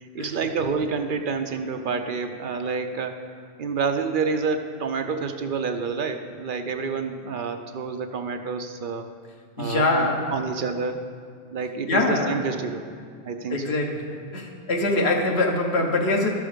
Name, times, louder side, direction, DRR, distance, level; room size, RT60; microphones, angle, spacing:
voice 1, 0.0-9.1 9.6-11.0 11.5-12.8 13.2-13.7, right 5 dB, 60° right, 6 dB, 0.7 m, -28 dB
voice 2, 9.6-10.3 11.9-12.4 13.5-14.1 14.3-16.3, left 2 dB, 90° left, 2 dB, 1.3 m, -23 dB
12.5 x 6.2 x 5.0 m, 2.1 s
omnidirectional pair, 1.1 m